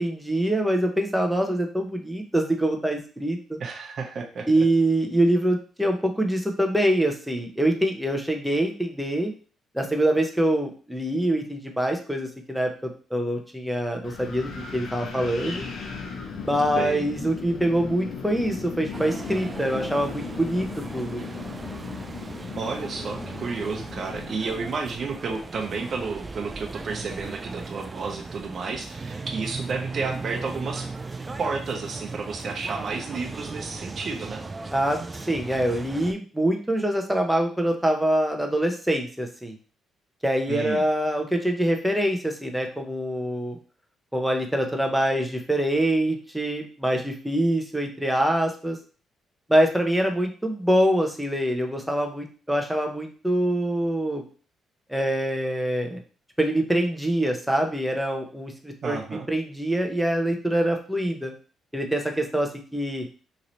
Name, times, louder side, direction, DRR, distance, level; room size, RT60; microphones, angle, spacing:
voice 1, 0.0-3.6 4.5-9.3 9.7-15.7 16.4-21.2 34.7-35.0 35.3-39.6 40.2-43.6 44.1-48.8 49.5-54.2 54.9-56.0 56.4-59.0 59.3-61.3 61.7-63.1, right 1 dB, 5° right, 3 dB, 0.8 m, -24 dB
voice 2, 3.6-4.5 16.8-17.0 22.5-30.9 31.4-34.4 40.5-40.8 58.8-59.3, right 4 dB, 50° right, 3 dB, 0.7 m, -31 dB
Wind, 14.0-24.3, left 5 dB, 65° left, 0.8 m, -37 dB
sound 1, 18.9-36.1, right 3 dB, 25° right, 0.3 m, -37 dB
3.1 x 2.8 x 4.0 m, 0.39 s
cardioid pair, 90°, 0 cm